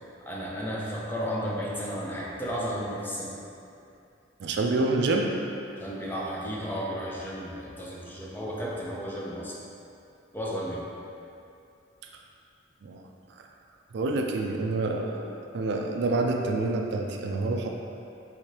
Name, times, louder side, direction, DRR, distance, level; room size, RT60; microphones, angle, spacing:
voice 1, 0.2-3.3 5.8-9.6 10.3-10.9, equal, 10° left, -5 dB, 0.5 m, -33 dB
voice 2, 4.4-5.4 12.8-13.0 13.9-17.7, right 2 dB, 60° right, 2 dB, 0.4 m, -27 dB
4.9 x 3.4 x 2.8 m, 2.6 s
head